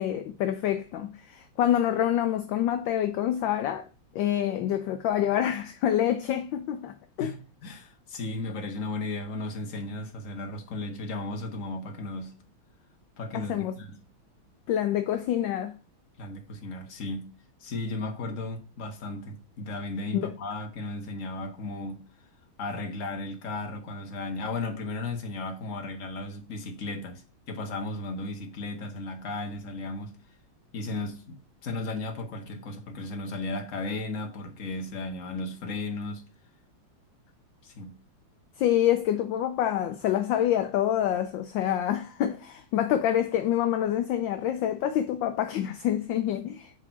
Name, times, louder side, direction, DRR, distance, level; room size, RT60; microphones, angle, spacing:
voice 1, 0.0-3.9 4.1-7.3 13.3-13.8 14.7-15.8 20.1-20.3 38.6-46.7, left 11 dB, 75° left, 1.2 m, -27 dB
voice 2, 7.6-12.3 13.2-14.0 16.2-17.3 17.6-22.0 22.6-30.2 30.7-31.4 31.6-36.2 37.6-38.0, left 2 dB, 45° left, 1.4 m, -35 dB
6.0 x 3.9 x 5.8 m
omnidirectional pair, 2.4 m